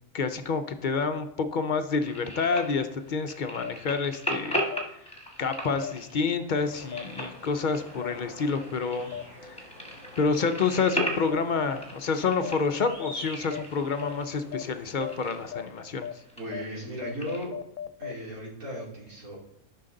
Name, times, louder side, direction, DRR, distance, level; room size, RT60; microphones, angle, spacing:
voice 1, 0.1-4.6 5.4-9.2 9.4-9.6 10.2-16.1, left 4 dB, 55° left, 8 dB, 0.5 m, -28 dB
sound 1, 2.0-17.4, equal, 5° left, 1.3 m, -38 dB
sound 2, 2.5-2.6 3.6-3.7 4.7-4.8 5.8-5.9 6.9-7.0 8.0-8.1 9.1-9.2 10.2-10.3 11.3-11.4 12.4-12.5 13.0-13.1 13.5-13.6 14.0-14.1 14.5-14.6 15.0-15.1 15.5-15.6 16.0-16.1 16.5-16.6 17.0-18.1, left 9 dB, 75° left, 1.0 m, -35 dB
sound 3, 6.5-15.4, left 1 dB, 50° right, 2.4 m, -46 dB
voice 2, 16.4-17.5 18.0-19.4, equal, 70° right, -6 dB, 3.2 m, -36 dB
13.5 x 5.8 x 3.8 m, 0.81 s
omnidirectional pair, 1.5 m